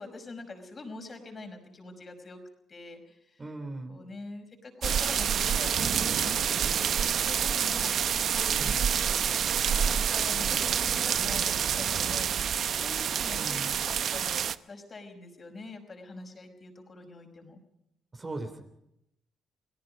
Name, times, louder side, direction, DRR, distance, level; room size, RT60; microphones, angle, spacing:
voice 1, 0.0-2.4 2.7-3.5 3.9-9.2 9.6-17.6, left 3 dB, 35° left, 4 dB, 5.3 m, -44 dB
voice 2, 3.4-4.0 8.5-8.8 13.3-13.7 18.1-18.6, right 2 dB, 25° right, 5 dB, 3.4 m, -39 dB
sound 1, 4.8-14.6, right 8 dB, 60° right, 0.8 m, -27 dB
29.5 x 18.0 x 5.3 m, 0.82 s
cardioid pair, 90°, 0 cm